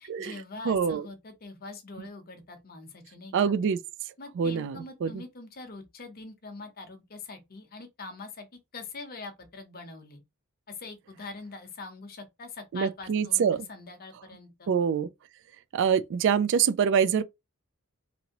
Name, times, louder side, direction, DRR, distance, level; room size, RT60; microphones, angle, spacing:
voice 1, 0.0-3.3 4.2-10.2 10.7-14.7, left 3 dB, 45° left, 0.8 m, -43 dB
voice 2, 0.6-1.1 2.0-2.1 3.3-3.8 4.4-5.2 12.7-13.7 14.7-15.1 15.7-17.2, right 7 dB, 60° right, 0.3 m, -25 dB
2.8 x 2.6 x 2.9 m
head